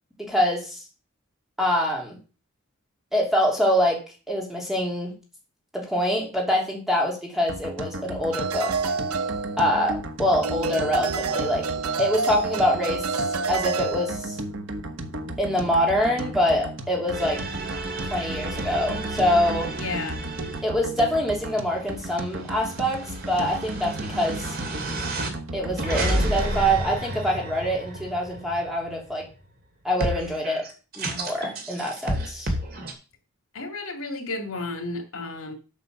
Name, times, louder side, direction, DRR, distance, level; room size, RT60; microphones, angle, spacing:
voice 1, 0.2-0.8 1.6-2.2 3.1-4.0 4.3-5.1 5.7-8.7 9.6-11.7 12.0-14.4 15.4-17.4 18.1-19.7 20.6-24.5 25.5-29.3 29.8-30.6 31.0-32.5, equal, ahead, -2 dB, 3.2 m, -25 dB
sound 1, 7.5-26.7, right 1 dB, 60° right, 1.2 m, -35 dB
sound 2, 8.3-10.0 10.4-14.4, right 4 dB, 90° right, 0.8 m, -28 dB
sound 3, 17.1-20.6 21.1-29.3 30.0-32.9, right 1 dB, 45° right, 2.6 m, -31 dB
voice 2, 19.8-20.2 33.5-35.5, left 3 dB, 80° left, 4 dB, 2.5 m, -32 dB
8.2 x 6.7 x 6.7 m, 0.33 s
head